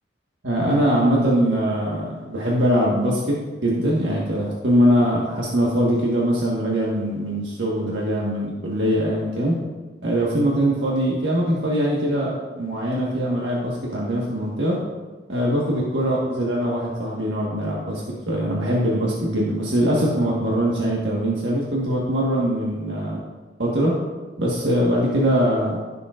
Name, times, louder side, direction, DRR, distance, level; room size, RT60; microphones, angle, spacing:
voice 1, 0.4-3.4 3.6-9.5 10.0-14.8 15.3-18.0 18.3-23.2 23.6-23.9 24.4-25.8, equal, 90° right, -5 dB, 1.5 m, -22 dB
15.0 x 6.9 x 2.5 m, 1.3 s
head